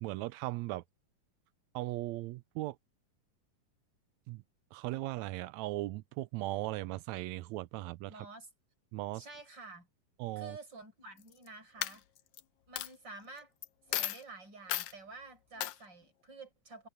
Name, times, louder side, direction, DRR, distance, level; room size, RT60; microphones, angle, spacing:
voice 1, 0.0-0.8 1.7-2.8 4.3-4.4 4.7-8.3 8.9-9.2 10.2-10.6, right 18 dB, 80° right, 1.6 m, -38 dB
voice 2, 8.1-8.5 9.1-9.9 10.4-12.0 12.7-13.5 13.9-16.9, right 3 dB, 30° right, 6.5 m, -50 dB
Coin (dropping), 11.2-11.5 11.8-12.4 12.8-12.9 13.6-13.7 13.9-14.2 14.7-14.9 15.6-15.7, left 14 dB, 75° left, 2.0 m, -34 dB
omnidirectional pair, 3.8 m